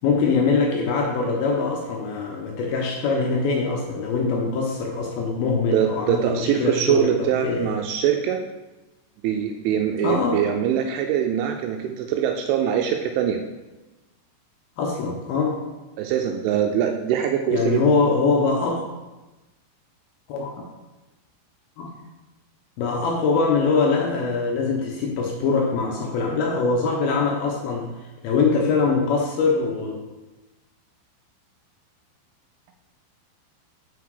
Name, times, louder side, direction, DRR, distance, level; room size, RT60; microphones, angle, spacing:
voice 1, 0.0-7.7 10.0-10.4 14.8-15.6 17.5-18.8 20.3-20.5 21.8-21.9 22.8-27.9 28.2-30.0, left 4 dB, 85° left, 0 dB, 2.1 m, -23 dB
voice 2, 5.7-8.4 9.2-13.4 16.0-17.9, right 9 dB, 85° right, 4 dB, 2.9 m, -23 dB
6.5 x 5.9 x 4.7 m, 1.1 s
omnidirectional pair, 5.6 m